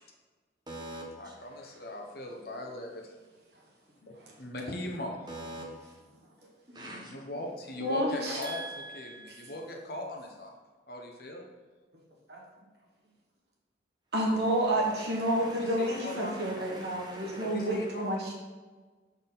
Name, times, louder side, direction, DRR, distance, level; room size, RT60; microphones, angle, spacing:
voice 1, 0.7-1.0 5.3-5.6 6.7-7.2 8.4-9.6 14.5-18.1, right 1 dB, 25° right, -2 dB, 1.0 m, -44 dB
voice 2, 1.2-3.1 4.0-5.3 7.0-8.6 8.9-10.5 10.9-11.4 15.6-16.6 17.2-18.2, left 1 dB, 55° left, 1 dB, 0.8 m, -40 dB
voice 3, 7.8-8.4 12.3-12.4 14.1-18.3, right 1 dB, 65° right, -2 dB, 1.3 m, -29 dB
5.9 x 4.0 x 4.0 m, 1.3 s
head